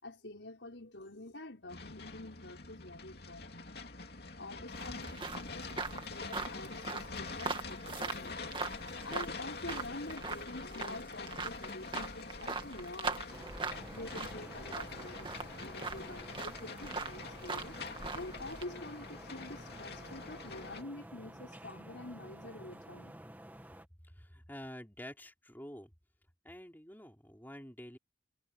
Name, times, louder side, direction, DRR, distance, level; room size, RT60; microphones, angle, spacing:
voice 1, 0.0-3.9 4.4-8.4 9.0-13.2 13.8-17.8 18.1-23.2, left 2 dB, 70° left, 5.3 m, -47 dB
sound 1, 1.7-20.8, left 3 dB, 55° left, 2.9 m, -45 dB
sound 2, 4.7-18.6, right 4 dB, 25° right, 2.2 m, -42 dB
sound 3, 13.3-23.9, right 1 dB, 10° right, 2.2 m, -51 dB
voice 2, 24.0-25.9 26.4-28.0, equal, 10° left, 5.1 m, -48 dB
head